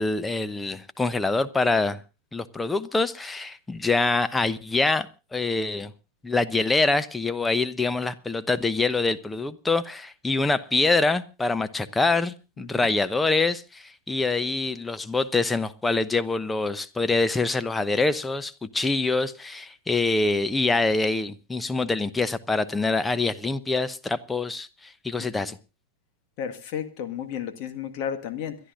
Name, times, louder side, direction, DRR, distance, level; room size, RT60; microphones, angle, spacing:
voice 1, 0.0-2.0 2.3-5.1 5.3-5.9 6.2-25.6, left 3 dB, 10° left, 14 dB, 0.9 m, -25 dB
voice 2, 12.6-12.9 25.5-25.6 26.4-28.6, left 8 dB, 45° left, 7 dB, 1.8 m, -33 dB
29.5 x 12.0 x 2.6 m, 0.31 s
figure-of-eight pair, 90°, 0 cm